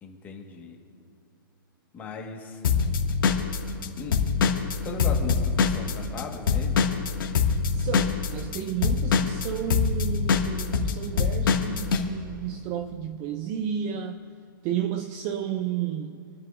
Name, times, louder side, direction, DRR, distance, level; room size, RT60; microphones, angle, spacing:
voice 1, 0.0-0.8 1.9-2.6 4.0-4.2 4.8-6.9, left 4 dB, 15° left, 1.5 m, -37 dB
Drum kit / Drum, 2.6-6.2 6.5-12.0, left 6 dB, 70° left, 1.9 m, -23 dB
voice 2, 7.7-14.2 14.6-16.3, right 9 dB, 20° right, 0.4 m, -32 dB
27.5 x 10.5 x 2.5 m
hypercardioid pair, 165°, 12 cm